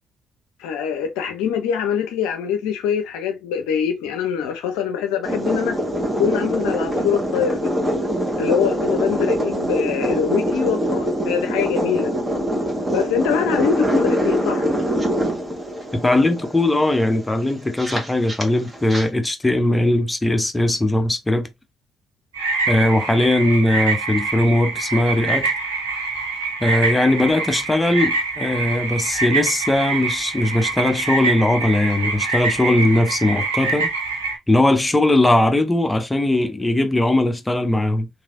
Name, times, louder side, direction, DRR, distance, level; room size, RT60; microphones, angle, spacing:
voice 1, 0.6-5.8 6.2-7.7 8.4-12.1 12.9-14.6, left 8 dB, 75° left, 0.5 m, -24 dB
sound 1, 5.2-19.1, equal, 20° right, 1.4 m, -24 dB
voice 2, 15.9-21.5 22.7-25.5 26.6-33.9 34.5-38.1, left 1 dB, 15° left, 0.7 m, -19 dB
sound 2, 22.3-34.4, right 4 dB, 85° right, 0.8 m, -25 dB
3.2 x 2.7 x 2.5 m
hypercardioid pair, 45°, 0 cm